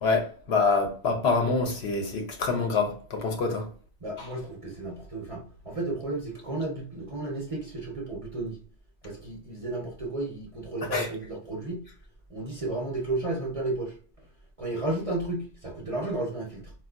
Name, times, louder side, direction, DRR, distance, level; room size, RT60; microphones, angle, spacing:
voice 1, 0.0-3.7 4.2-4.3 10.9-11.1, left 4 dB, 65° left, 0.9 m, -26 dB
voice 2, 4.0-8.6 9.0-11.8 12.3-13.9 14.6-16.7, right 2 dB, 35° right, 0.6 m, -33 dB
4.3 x 2.3 x 2.2 m
omnidirectional pair, 1.2 m